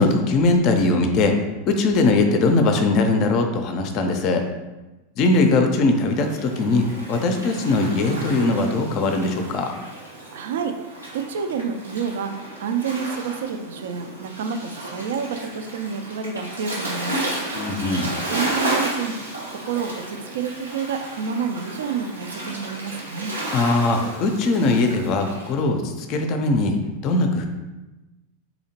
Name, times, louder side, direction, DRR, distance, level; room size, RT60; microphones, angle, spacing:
voice 1, 0.0-1.4 1.7-4.5 5.2-9.7 17.5-18.1 23.5-27.5, left 2 dB, 45° left, 5 dB, 0.4 m, -20 dB
Waves surf, 6.1-25.5, right 1 dB, 90° right, 0.8 m, -33 dB
voice 2, 10.3-10.7 11.1-12.3 12.6-17.3 18.0-19.1 19.6-23.3, right 6 dB, 65° right, 7 dB, 0.4 m, -29 dB
4.0 x 2.8 x 2.8 m, 1.1 s
figure-of-eight pair, 90°, 0 cm